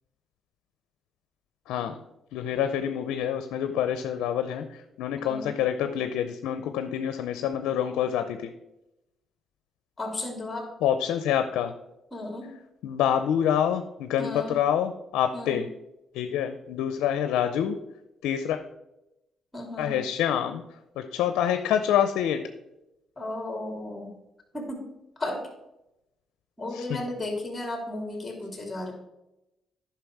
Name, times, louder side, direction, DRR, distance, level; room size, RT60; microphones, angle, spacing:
voice 1, 2.3-4.6 5.0-8.5 10.8-11.7 12.8-15.7 16.1-17.8 18.2-18.6 19.8-20.6 21.0-22.4 26.7-27.0, left 9 dB, 90° left, 9 dB, 0.5 m, -26 dB
voice 2, 5.2-5.6 10.0-10.7 12.1-12.6 14.2-14.6 15.3-15.7 19.5-20.1 23.2-24.1 24.5-24.9 25.2-25.4 26.6-28.9, left 2 dB, 15° left, 1 dB, 2.9 m, -34 dB
10.5 x 5.7 x 4.7 m, 0.91 s
cardioid pair, 90°, 0 cm